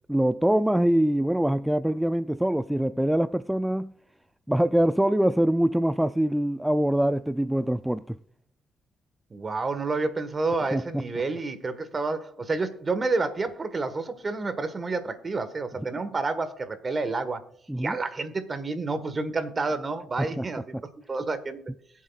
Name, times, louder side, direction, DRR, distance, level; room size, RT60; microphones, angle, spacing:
voice 1, 0.1-3.9 4.5-8.2 10.7-11.0 17.7-18.0 20.2-20.5, right 1 dB, 5° right, 0.3 m, -24 dB
voice 2, 9.3-17.4 17.8-20.7 21.1-21.6, right 3 dB, 35° right, 1.4 m, -29 dB
22.0 x 7.4 x 2.4 m
cardioid pair, 90°, 0 cm